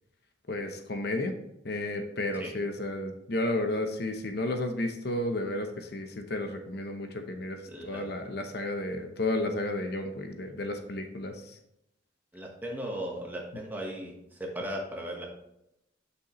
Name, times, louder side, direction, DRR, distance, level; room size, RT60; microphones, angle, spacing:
voice 1, 0.5-1.4 1.6-11.6, left 1 dB, 55° left, 5 dB, 0.8 m, -32 dB
voice 2, 7.7-8.1 12.3-15.3, right 1 dB, 10° right, -1 dB, 1.3 m, -37 dB
8.5 x 6.5 x 3.1 m, 0.80 s
head